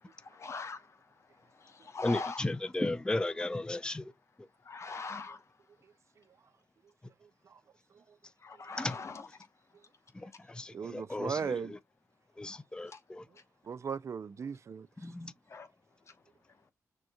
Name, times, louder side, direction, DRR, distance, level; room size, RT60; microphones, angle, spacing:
voice 1, 0.2-0.9 1.6-2.5 4.6-5.4 8.4-9.3 12.9-13.0 15.5-15.7, left 4 dB, 50° left, 1.0 m, -41 dB
voice 2, 2.0-4.0 8.8-8.9 10.6-11.4 12.4-13.2 15.0-15.3, left 2 dB, 15° left, 0.5 m, -34 dB
voice 3, 10.7-11.7 13.7-14.9, right 6 dB, 55° right, 0.4 m, -36 dB
6.3 x 2.8 x 2.2 m
cardioid pair, 70°, 6 cm